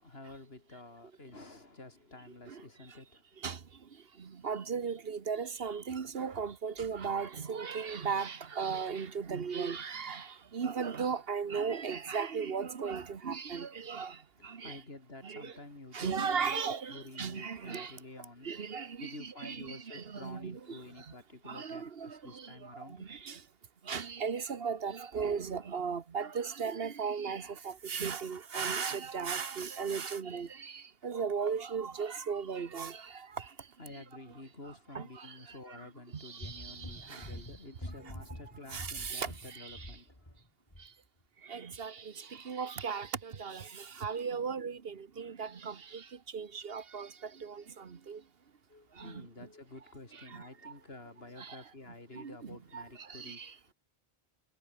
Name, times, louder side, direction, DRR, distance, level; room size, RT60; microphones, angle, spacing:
voice 1, 0.0-3.2 14.4-16.6 16.9-23.4 33.8-40.4 48.7-53.7, left 2 dB, 70° left, 4.2 m, -50 dB
voice 2, 4.4-10.3 10.5-14.1 14.4-14.8 15.2-15.5 15.9-17.9 18.4-20.8 21.5-22.2 23.0-23.3 23.9-30.7 31.0-33.0 34.9-35.1 36.4-36.8 37.1-37.3 38.7-39.3 39.6-39.8 41.5-41.9 42.5-43.6 44.0-45.7 46.3-47.1 47.4-47.6 48.1-48.2 49.0-49.1 51.4-51.6 52.2-52.8 53.1-53.5, right 6 dB, 65° right, 1.4 m, -36 dB
sound 1, 36.4-40.4 40.7-40.9, left 1 dB, 25° left, 7.0 m, -46 dB
omnidirectional pair, 1.1 m